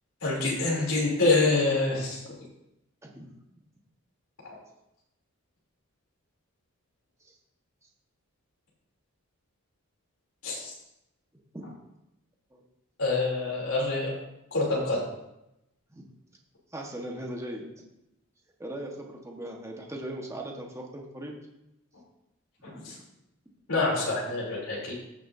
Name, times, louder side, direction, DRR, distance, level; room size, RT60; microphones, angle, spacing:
voice 1, 0.2-2.3 10.4-10.7 13.0-14.1 14.5-15.1 22.6-22.9 23.7-24.9, left 3 dB, 65° left, -3 dB, 3.1 m, -26 dB
voice 2, 3.0-3.3 7.3-7.4 11.5-11.7 12.5-12.6 15.9-16.0 16.7-17.7 18.6-21.4 22.7-22.9, right 1 dB, 15° right, 0 dB, 1.2 m, -39 dB
15.5 x 6.1 x 2.7 m, 0.87 s
head